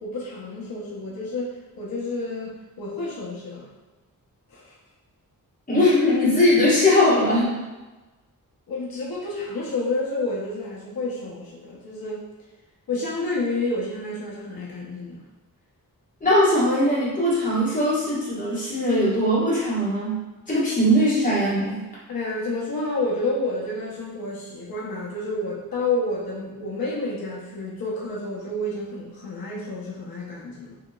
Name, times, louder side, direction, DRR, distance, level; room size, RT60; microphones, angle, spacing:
voice 1, 0.0-3.7 4.5-4.7 8.7-12.2 12.9-15.2 22.1-30.8, left 2 dB, 85° left, -5 dB, 0.7 m, -29 dB
voice 2, 5.7-7.6 16.2-20.2 20.5-21.8, left 1 dB, 25° left, -9 dB, 1.2 m, -20 dB
2.9 x 2.8 x 2.2 m, 1.2 s
wide cardioid pair, 135°, 35 cm